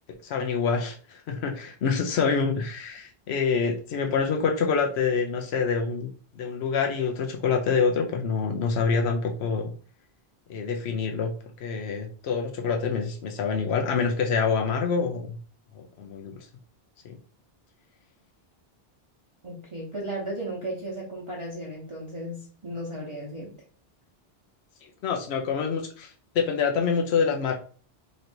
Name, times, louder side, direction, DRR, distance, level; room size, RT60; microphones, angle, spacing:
voice 1, 0.2-6.1 6.4-9.7 10.5-11.3 11.6-15.4 15.7-16.4 17.0-17.2 25.0-27.5, left 5 dB, 85° left, 3 dB, 0.9 m, -26 dB
voice 2, 19.4-23.6, right 1 dB, 30° right, -5 dB, 0.9 m, -35 dB
3.2 x 2.6 x 4.3 m, 0.41 s
omnidirectional pair, 1.0 m